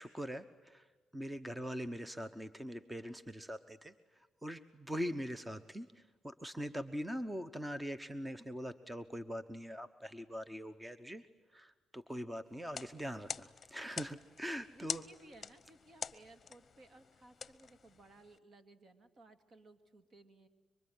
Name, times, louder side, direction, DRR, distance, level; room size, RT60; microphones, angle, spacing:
voice 1, 0.0-11.2 11.5-15.0, equal, 10° right, 12 dB, 0.9 m, -42 dB
sound 1, 12.6-18.4, left 6 dB, 40° left, 0.9 m, -46 dB
voice 2, 14.7-20.5, right 2 dB, 50° right, 10 dB, 2.4 m, -59 dB
25.5 x 24.0 x 9.5 m, 1.2 s
cardioid pair, 90°, 0 cm